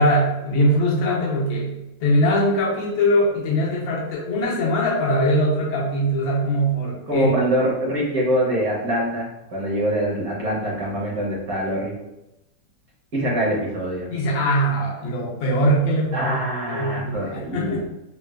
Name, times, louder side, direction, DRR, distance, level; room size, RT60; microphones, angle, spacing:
voice 1, 0.0-7.3 14.1-16.4 16.7-17.8, equal, 85° left, -4 dB, 1.5 m, -21 dB
voice 2, 7.1-11.9 13.1-14.1 16.1-17.9, right 1 dB, 60° right, -5 dB, 1.1 m, -24 dB
4.1 x 2.2 x 2.2 m, 0.94 s
omnidirectional pair, 2.1 m